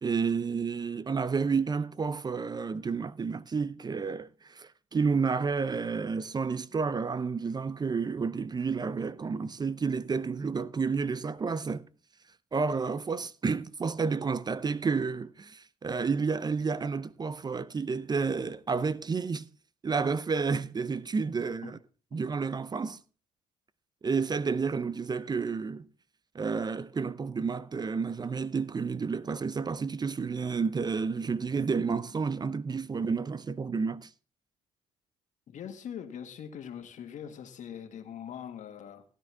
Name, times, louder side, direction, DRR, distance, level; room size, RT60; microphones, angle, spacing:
voice 1, 0.0-11.9 12.5-19.5 19.8-21.8 22.1-23.0 24.0-25.9 26.3-34.1, right 5 dB, 30° right, 0.6 m, -30 dB
voice 2, 35.5-39.0, left 8 dB, 60° left, 1.8 m, -42 dB
16.0 x 9.5 x 3.5 m
supercardioid pair, 70°, 14 cm